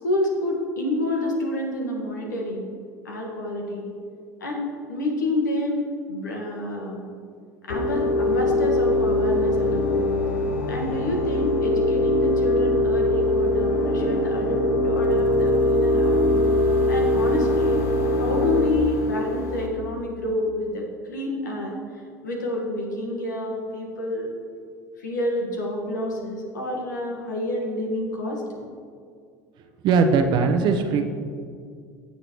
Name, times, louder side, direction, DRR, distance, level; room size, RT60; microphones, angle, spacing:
voice 1, 0.0-2.7 3.0-3.9 4.4-7.1 7.6-10.1 10.7-16.4 16.9-17.8 18.2-21.7 22.2-24.3 25.0-28.4, left 1 dB, 85° left, 0 dB, 1.7 m, -28 dB
sound 1, 7.7-19.7, left 1 dB, 65° left, 1.3 m, -22 dB
voice 2, 29.8-31.1, right 5 dB, 55° right, 6 dB, 0.9 m, -20 dB
16.5 x 6.6 x 3.1 m, 2.2 s
hypercardioid pair, 75°, 10 cm